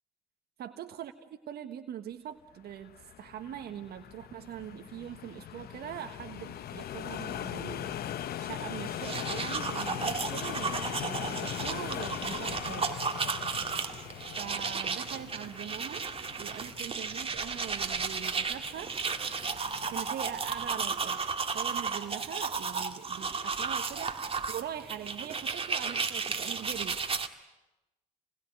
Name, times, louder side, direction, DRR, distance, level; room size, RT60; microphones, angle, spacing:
voice 1, 0.6-1.1 1.5-8.0 8.4-13.1 14.4-16.1 16.4-18.9 19.8-21.3 21.5-24.2 24.5-27.0, right 10 dB, 65° right, 7 dB, 1.5 m, -42 dB
sound 1, 2.7-21.0, left 10 dB, 60° left, 1.0 m, -41 dB
sound 2, 8.9-27.3, right 5 dB, 35° right, 2.1 m, -34 dB
27.5 x 21.0 x 9.4 m, 0.98 s
hypercardioid pair, 55°, 18 cm